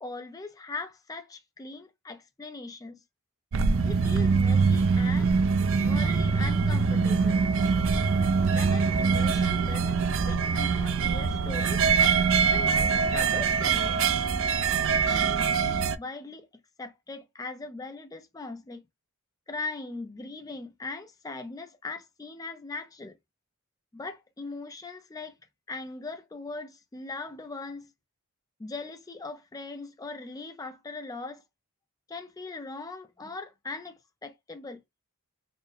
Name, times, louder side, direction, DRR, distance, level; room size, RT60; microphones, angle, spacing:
voice 1, 0.0-3.0 3.8-5.4 5.8-7.4 8.5-11.8 12.4-14.0 15.1-16.5 16.8-18.8 19.5-23.2 23.9-25.3 25.7-27.9 28.6-31.4 32.1-34.8, left 3 dB, 15° left, 0.3 m, -40 dB
sound 1, 3.5-16.0, right 5 dB, 60° right, 0.4 m, -24 dB
4.3 x 2.0 x 3.2 m
head